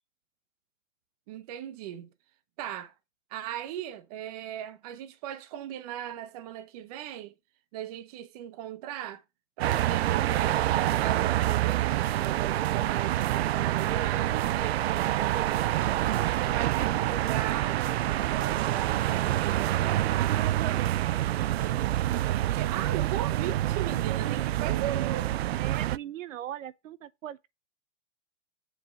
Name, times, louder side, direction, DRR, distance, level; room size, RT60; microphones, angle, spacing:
voice 1, 1.3-2.1 2.6-2.9 3.3-7.3 7.7-9.2 9.6-14.9 15.6-20.9 21.4-25.3, right 11 dB, 30° right, 0.9 m, -38 dB
sound 1, 9.6-26.0, right 14 dB, 55° right, 0.4 m, -27 dB
voice 2, 15.3-15.6 25.6-27.5, right 11 dB, 80° right, 0.8 m, -40 dB
7.8 x 4.6 x 6.9 m
hypercardioid pair, 165°, 38 cm